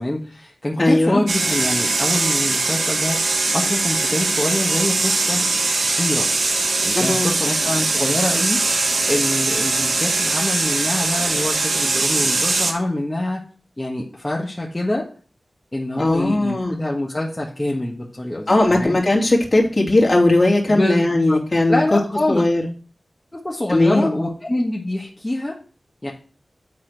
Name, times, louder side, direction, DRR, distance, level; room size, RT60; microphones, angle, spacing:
voice 1, 0.0-3.2 3.5-5.5 5.8-6.3 6.8-13.4 13.8-15.1 15.7-19.0 20.7-21.4 21.7-22.4 23.3-25.6 26.0-26.1, left 1 dB, 20° left, -2 dB, 1.5 m, -25 dB
voice 2, 0.8-1.2 6.9-7.3 16.0-16.8 18.5-22.0 22.3-22.6 23.7-24.2, left 2 dB, 45° left, -2 dB, 2.8 m, -18 dB
sound 1, 1.3-12.7, right 3 dB, 85° right, 1.4 m, -21 dB
8.5 x 4.3 x 6.5 m, 0.39 s
wide cardioid pair, 60°, 0 cm